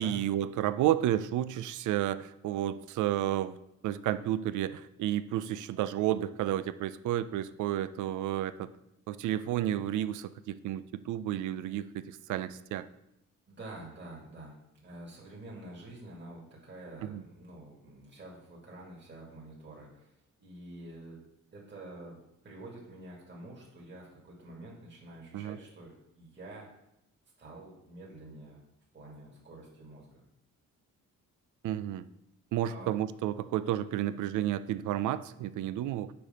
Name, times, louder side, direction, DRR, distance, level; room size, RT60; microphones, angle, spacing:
voice 1, 0.0-3.6 3.8-8.7 9.1-12.9 17.0-17.2 25.3-25.6 31.6-32.0 32.5-36.1, right 12 dB, 80° right, 15 dB, 0.5 m, -31 dB
voice 2, 13.5-14.6 14.8-20.1 20.4-21.2 21.5-26.7 27.4-28.6 28.9-30.2 32.7-32.9, right 2 dB, 35° right, -3 dB, 2.4 m, -48 dB
7.0 x 5.0 x 5.2 m, 0.82 s
cardioid pair, 90°, 30 cm